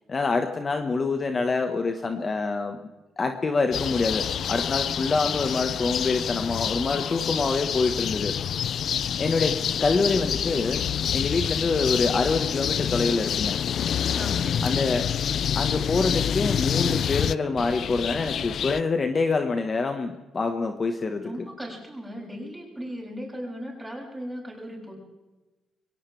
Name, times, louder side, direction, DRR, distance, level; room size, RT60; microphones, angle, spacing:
voice 1, 0.1-2.8 3.2-8.3 9.2-10.8 11.1-13.6 14.6-15.1 15.5-21.3, left 4 dB, 35° left, 5 dB, 1.5 m, -26 dB
sound 1, 3.7-18.8, left 8 dB, 60° left, 0.5 m, -27 dB
voice 2, 14.1-14.9 21.2-24.9, equal, 10° right, -2 dB, 7.6 m, -37 dB
23.0 x 18.0 x 3.5 m, 1.1 s
cardioid pair, 90°, 0 cm